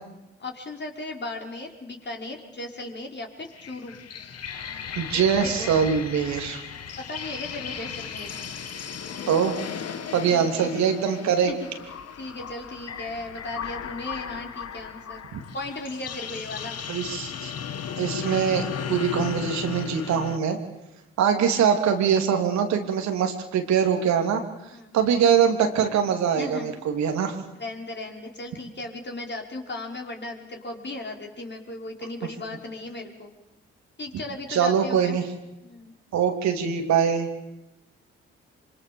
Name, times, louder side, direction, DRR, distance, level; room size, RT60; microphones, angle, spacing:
voice 1, 0.4-4.0 5.1-5.7 7.0-8.4 10.3-10.7 11.5-11.6 12.2-15.2 15.5-16.8 24.7-25.0 26.3-26.8 27.6-33.3 34.0-35.2 35.6-35.9, left 2 dB, 35° left, 1 dB, 5.4 m, -36 dB
sound 1, 3.4-20.4, left 7 dB, 55° left, 2.1 m, -36 dB
voice 2, 5.0-6.6 9.3-9.5 10.1-11.5 15.3-15.4 16.9-17.5 18.0-20.6 21.2-24.4 24.9-27.4 34.5-35.3 36.1-37.3, right 7 dB, 65° right, 5 dB, 3.2 m, -23 dB
25.5 x 25.0 x 7.2 m, 0.93 s
hypercardioid pair, 45°, 30 cm